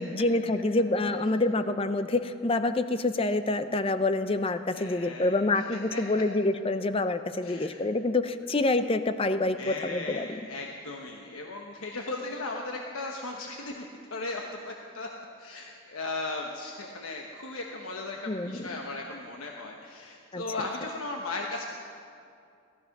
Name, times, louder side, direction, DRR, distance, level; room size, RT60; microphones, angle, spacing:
voice 1, 0.0-10.5 18.3-18.8 20.3-20.7, left 2 dB, 25° left, 11 dB, 0.5 m, -27 dB
voice 2, 4.7-5.4 5.7-6.0 7.4-7.8 9.6-15.1 15.4-21.6, left 2 dB, 85° left, 1 dB, 1.1 m, -37 dB
17.5 x 13.0 x 5.9 m, 2.4 s
head